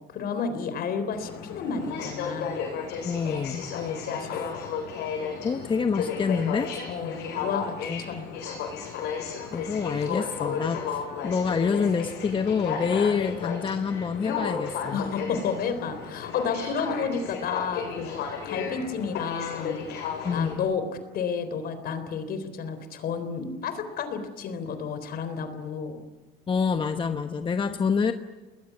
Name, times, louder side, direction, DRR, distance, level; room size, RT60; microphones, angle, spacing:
voice 1, 0.0-2.6 3.7-4.6 6.9-8.3 14.9-18.1 18.4-19.8 20.3-20.8 21.1-26.0, left 5 dB, 65° left, 10 dB, 3.8 m, -31 dB
Aircraft, 1.1-20.5, left 6 dB, 85° left, 6.2 m, -33 dB
voice 2, 3.0-3.7 5.4-6.7 7.8-8.4 9.5-15.0 20.2-20.6 26.5-28.1, left 5 dB, 30° left, 8 dB, 1.1 m, -27 dB
30.0 x 20.5 x 9.6 m, 1.3 s
cardioid pair, 110°, 17 cm